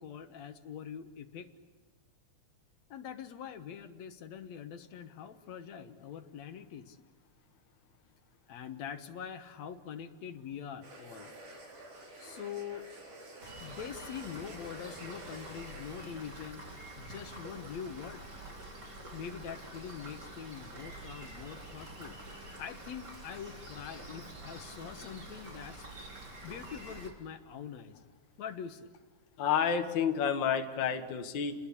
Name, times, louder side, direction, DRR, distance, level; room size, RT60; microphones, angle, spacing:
voice 1, 0.0-1.5 2.9-7.0 8.5-11.3 12.2-12.9 13.6-16.6 17.0-18.3 19.1-25.9 26.4-28.0 28.4-28.9, left 8 dB, 65° left, 9 dB, 2.3 m, -44 dB
sound 1, 10.8-16.0, right 1 dB, 75° right, 5.7 m, -50 dB
Rain, 13.4-27.1, right 1 dB, 30° right, 4.2 m, -47 dB
voice 2, 29.4-31.6, left 7 dB, 45° left, 5 dB, 1.8 m, -30 dB
29.5 x 20.5 x 8.6 m, 1.4 s
omnidirectional pair, 3.6 m